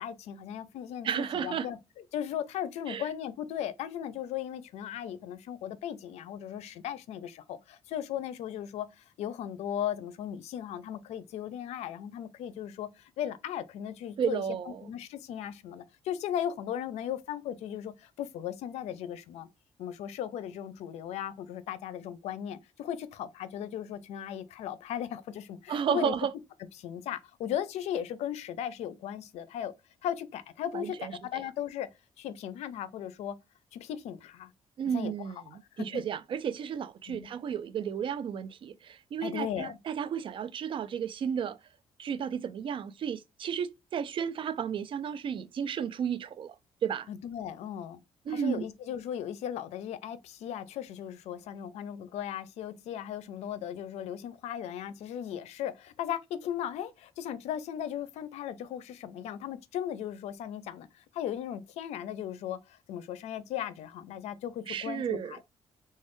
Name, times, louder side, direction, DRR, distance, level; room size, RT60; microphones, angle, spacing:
voice 1, 0.0-1.8 2.1-19.5 19.8-26.1 26.8-29.7 30.0-31.9 32.2-33.4 33.7-34.5 34.9-35.1 35.8-36.0 37.1-37.3 39.2-39.8 47.1-48.0 48.3-65.4, left 10 dB, 90° left, 0.4 m, -37 dB
voice 2, 1.0-1.7 2.9-3.1 14.2-14.9 25.7-26.3 30.7-31.1 34.8-41.6 42.0-46.5 46.8-47.1 48.3-48.6 64.7-65.4, right 8 dB, 50° right, 0.4 m, -33 dB
3.1 x 2.2 x 3.0 m
cardioid pair, 105°, 11 cm